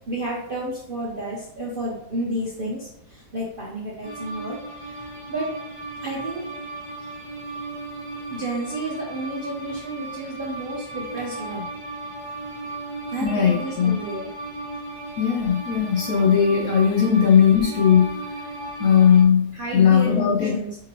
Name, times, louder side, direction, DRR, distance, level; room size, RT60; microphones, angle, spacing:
voice 1, 0.1-5.5 6.0-6.5 8.3-11.7 13.1-14.3 19.5-20.8, right 1 dB, 55° right, -4 dB, 0.5 m, -31 dB
sound 1, 4.0-19.2, right 2 dB, 20° left, 0.6 m, -36 dB
voice 2, 13.2-14.0 15.2-18.2 18.8-20.5, left 7 dB, 70° left, 0 dB, 0.8 m, -18 dB
4.9 x 2.8 x 2.9 m, 0.72 s
omnidirectional pair, 1.9 m